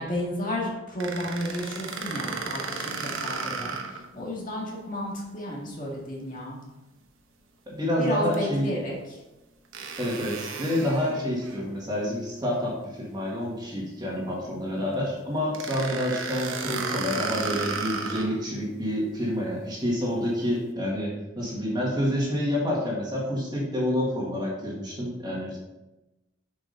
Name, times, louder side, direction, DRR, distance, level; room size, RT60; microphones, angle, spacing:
voice 1, 0.0-6.6 8.0-9.0, equal, 40° left, -3 dB, 2.0 m, -32 dB
sound 1, 1.0-4.1 4.5-4.6 8.3-8.4 9.7-11.6 15.5-18.4, right 4 dB, 75° right, 1.0 m, -33 dB
voice 2, 7.7-8.7 10.0-25.6, equal, 20° right, -4 dB, 1.8 m, -28 dB
7.1 x 6.1 x 4.0 m, 1.0 s
head